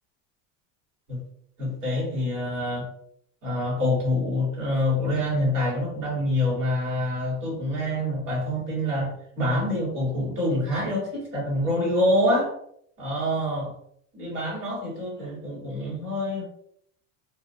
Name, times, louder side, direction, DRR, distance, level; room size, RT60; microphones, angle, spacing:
voice 1, 1.6-2.9 3.4-12.5 13.0-13.7 14.1-16.4, left 1 dB, 30° right, -5 dB, 1.1 m, -26 dB
2.3 x 2.2 x 2.5 m, 0.68 s
cardioid pair, 175°, 39 cm